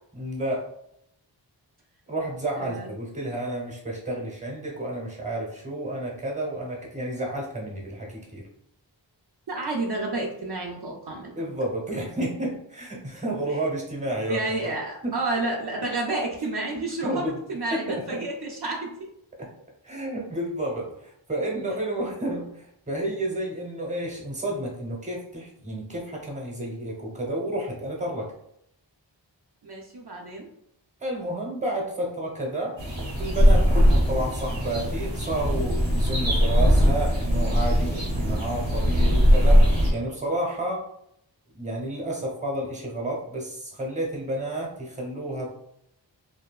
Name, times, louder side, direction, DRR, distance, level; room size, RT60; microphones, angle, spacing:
voice 1, 0.1-0.7 2.1-8.4 11.4-14.7 15.0-15.2 17.0-17.4 17.7-18.2 19.4-19.5 19.8-28.3 31.0-32.8 33.2-40.8 41.5-45.5, right 1 dB, 15° right, -2 dB, 0.8 m, -31 dB
voice 2, 2.6-2.9 9.5-11.3 14.3-19.1 29.6-30.5, right 2 dB, 60° right, -1 dB, 0.6 m, -30 dB
sound 1, 32.8-39.9, equal, 90° right, 1.0 m, -20 dB
2.7 x 2.2 x 2.3 m, 0.73 s
wide cardioid pair, 40°, 45 cm